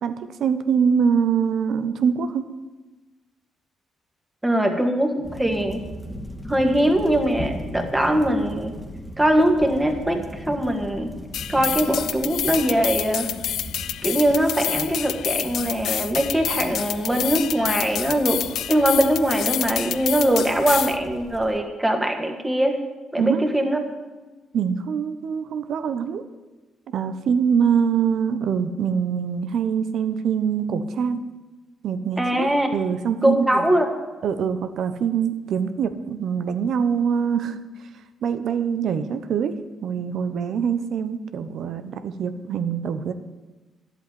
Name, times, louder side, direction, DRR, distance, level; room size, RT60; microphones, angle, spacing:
voice 1, 0.0-2.5 23.2-23.4 24.5-26.2 26.9-31.2 31.8-33.7 34.2-37.6 38.2-39.6 39.8-43.1, right 7 dB, 70° right, 11 dB, 1.0 m, -24 dB
voice 2, 4.4-5.8 6.5-8.7 9.2-11.1 11.5-13.3 14.0-18.4 18.7-22.8 23.1-23.9 32.2-32.7 33.2-33.9, right 1 dB, 10° right, 4 dB, 2.0 m, -21 dB
sound 1, 5.2-21.6, equal, 5° left, 1.8 m, -39 dB
sound 2, 11.3-21.0, left 10 dB, 75° left, 0.4 m, -28 dB
11.0 x 8.2 x 9.4 m, 1.2 s
cardioid pair, 90°, 0 cm